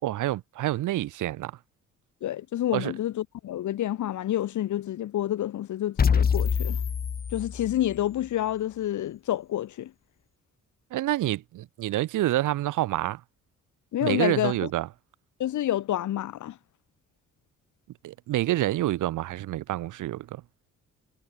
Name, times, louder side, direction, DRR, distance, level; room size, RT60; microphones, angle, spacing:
voice 1, 0.0-1.6 2.7-2.9 10.9-13.2 14.0-14.9 18.0-20.4, right 15 dB, 85° right, 3.6 m, -27 dB
voice 2, 2.2-6.8 7.3-9.9 13.9-14.7 15.4-16.6, left 12 dB, 75° left, 2.7 m, -28 dB
sound 1, 6.0-8.0, left 6 dB, 30° left, 0.8 m, -25 dB
cardioid pair, 90°, 30 cm